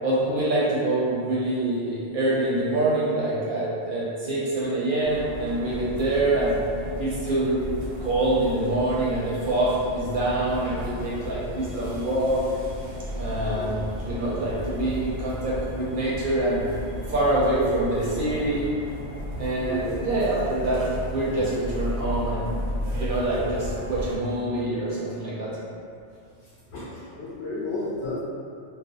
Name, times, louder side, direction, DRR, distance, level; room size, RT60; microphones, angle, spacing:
voice 1, 0.0-6.6 7.0-12.4 13.1-16.7 17.1-18.7 19.4-20.8 21.1-22.5 22.9-25.5, right 1 dB, 60° right, -8 dB, 0.6 m, -25 dB
sound 1, 5.0-24.2, equal, 85° right, 0.9 m, -34 dB
voice 2, 19.6-20.0 26.4-28.2, left 2 dB, 75° left, -10 dB, 0.8 m, -33 dB
2.4 x 2.1 x 2.7 m, 2.4 s
omnidirectional pair, 1.1 m